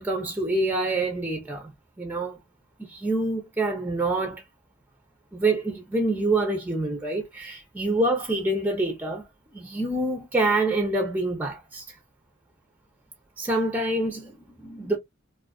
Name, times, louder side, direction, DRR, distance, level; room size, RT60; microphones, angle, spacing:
voice 1, 0.0-1.7 2.0-2.4 2.8-4.4 5.3-9.3 9.5-12.0 13.4-15.0, right 2 dB, 10° right, 0.5 m, -26 dB
2.3 x 2.3 x 2.3 m
head